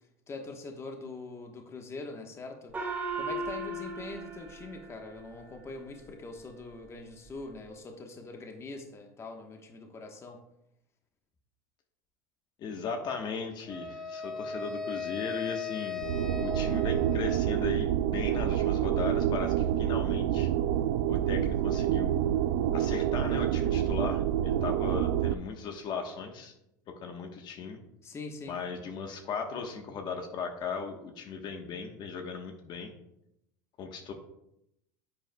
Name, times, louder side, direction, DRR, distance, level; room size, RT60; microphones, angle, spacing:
voice 1, 0.3-2.8 3.1-10.4 28.0-28.5, left 3 dB, 25° left, 4 dB, 1.2 m, -43 dB
Gong, 2.7-5.6, right 2 dB, 20° right, 2.3 m, -37 dB
voice 2, 12.6-16.0 16.4-20.5 21.1-22.2 22.7-26.5 27.0-27.8 28.5-32.9 33.8-34.1, left 5 dB, 45° left, 4 dB, 1.2 m, -37 dB
Wind instrument woodwind instrument, 13.7-17.8, left 5 dB, 5° left, 1.3 m, -38 dB
sound 1, 16.0-25.3, right 11 dB, 75° right, 0.4 m, -28 dB
10.0 x 7.7 x 2.3 m, 0.82 s
hypercardioid pair, 95°, 10 cm